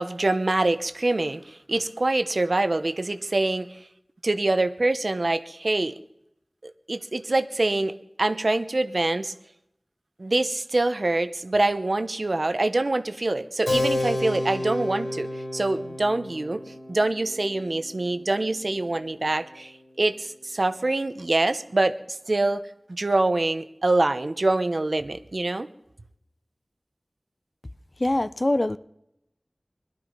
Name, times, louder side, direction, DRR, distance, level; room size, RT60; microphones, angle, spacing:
voice 1, 0.0-3.8 4.2-5.9 6.6-9.3 10.2-16.6 16.9-22.6 22.9-25.7, right 2 dB, 65° right, 0.8 m, -25 dB
Keyboard (musical), 13.7-19.8, left 1 dB, 70° left, 3.6 m, -31 dB
voice 2, 28.0-28.8, left 1 dB, 40° left, 0.6 m, -23 dB
21.0 x 12.0 x 5.3 m
wide cardioid pair, 55°, 0 cm